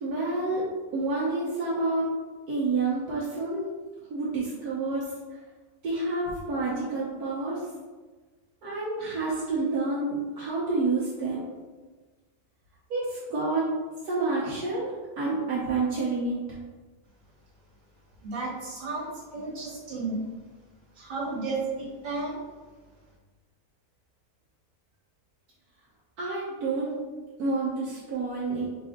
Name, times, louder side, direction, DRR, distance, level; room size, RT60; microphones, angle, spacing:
voice 1, 0.0-0.6 0.9-2.1 2.5-3.7 4.1-5.1 5.8-7.6 8.6-11.5 12.9-13.7 14.0-16.4 26.2-26.9 27.4-28.7, right 3 dB, 75° right, -7 dB, 1.3 m, -28 dB
voice 2, 18.2-20.2 21.0-22.4, right 3 dB, 60° right, -5 dB, 1.7 m, -33 dB
4.7 x 2.5 x 3.6 m, 1.3 s
omnidirectional pair, 1.6 m